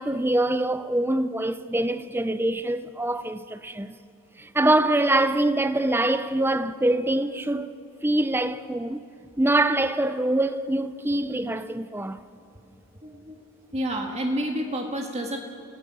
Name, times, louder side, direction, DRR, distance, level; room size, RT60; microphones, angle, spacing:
voice 1, 0.0-4.0 4.4-7.7 8.0-9.0 9.4-12.2, right 1 dB, 10° right, 0.6 m, -24 dB
voice 2, 13.0-13.4 13.7-15.4, equal, 30° right, 1.9 m, -29 dB
28.5 x 18.0 x 6.3 m
head